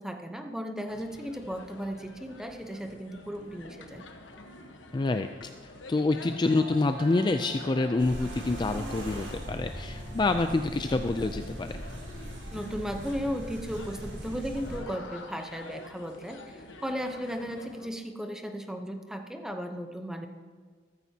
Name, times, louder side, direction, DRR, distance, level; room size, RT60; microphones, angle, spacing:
voice 1, 0.0-4.1 12.5-20.3, equal, 5° right, 5 dB, 0.8 m, -36 dB
sound 1, 0.9-17.9, left 2 dB, 75° left, 1.2 m, -48 dB
voice 2, 4.9-5.3 5.6-11.9, left 2 dB, 25° left, 7 dB, 0.3 m, -27 dB
sound 2, 6.5-11.8, right 2 dB, 35° right, 0.9 m, -50 dB
sound 3, 8.0-14.8, equal, 70° right, 2.7 m, -40 dB
14.0 x 13.5 x 2.8 m, 1.5 s
head